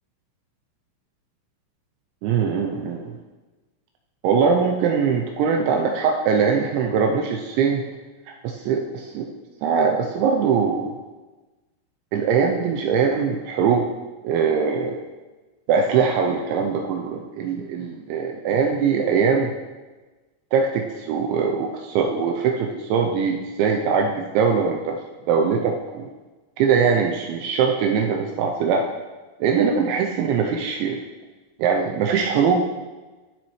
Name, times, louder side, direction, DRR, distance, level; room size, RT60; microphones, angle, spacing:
voice 1, 2.2-3.2 4.2-7.8 8.3-9.3 9.6-10.9 12.1-13.9 14.2-15.0 15.7-19.5 20.5-25.0 25.3-26.1 26.6-28.9 29.4-31.0 31.6-32.6, right 6 dB, 85° right, 2 dB, 2.7 m, -21 dB
13.0 x 7.2 x 3.1 m, 1.2 s
omnidirectional pair, 5.8 m